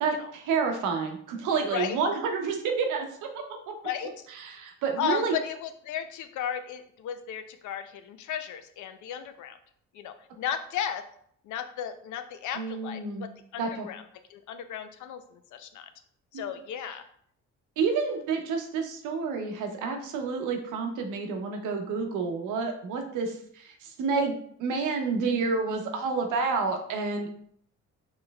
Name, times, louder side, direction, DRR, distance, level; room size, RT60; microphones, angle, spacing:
voice 1, 0.0-3.1 3.3-3.7 4.4-5.3 12.5-13.3 13.6-13.9 17.8-24.3 24.6-27.3, right 5 dB, 85° right, 4 dB, 0.8 m, -29 dB
voice 2, 5.0-9.6 9.9-11.0 11.4-14.0 14.3-15.9 16.3-17.1, left 9 dB, 80° left, 9 dB, 0.5 m, -35 dB
5.2 x 3.1 x 2.2 m, 0.64 s
cardioid pair, 90°, 30 cm